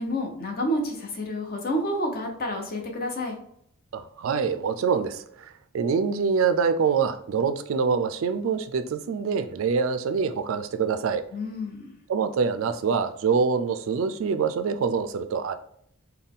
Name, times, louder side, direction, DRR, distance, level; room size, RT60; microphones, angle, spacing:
voice 1, 0.0-3.3 11.3-11.9, equal, 40° left, 3 dB, 0.7 m, -29 dB
voice 2, 3.9-11.2 12.1-15.5, right 5 dB, 60° right, 10 dB, 0.3 m, -25 dB
4.0 x 2.2 x 3.5 m, 0.68 s
head